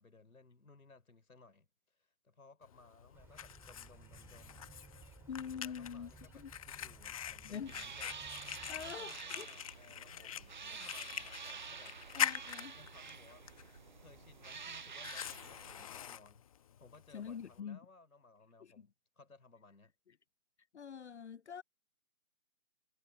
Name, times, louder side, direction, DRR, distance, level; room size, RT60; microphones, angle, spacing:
voice 1, 0.0-4.7 5.3-8.3 8.7-12.0 12.8-13.5 14.0-19.9, left 3 dB, 90° left, 4.8 m, -61 dB
Fire, 2.6-17.6, left 10 dB, 25° left, 1.1 m, -44 dB
sound 1, 3.1-9.0, right 5 dB, 5° right, 6.2 m, -58 dB
voice 2, 5.3-6.5 7.4-7.7 8.7-9.5 12.2-12.7 17.1-17.8 20.7-21.6, left 7 dB, 55° left, 0.6 m, -45 dB
sound 2, 7.6-15.8, right 5 dB, 35° right, 0.6 m, -49 dB
hypercardioid pair, 155°, 42 cm